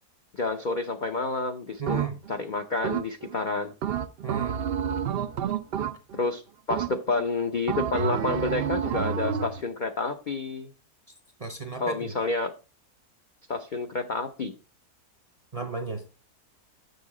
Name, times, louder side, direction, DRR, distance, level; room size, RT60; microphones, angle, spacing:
voice 1, 0.3-2.0 2.3-3.7 6.1-6.4 6.7-10.7 11.8-12.5 13.5-14.6, left 3 dB, 50° left, 0.5 m, -29 dB
voice 2, 1.8-2.2 4.2-4.6 11.4-12.1 15.5-16.1, right 5 dB, 30° right, 0.7 m, -33 dB
sound 1, 1.9-2.4 2.8-3.4 3.8-6.3 6.7-7.2 7.7-9.6, right 8 dB, 70° right, 0.5 m, -29 dB
6.7 x 6.4 x 4.9 m
omnidirectional pair, 1.6 m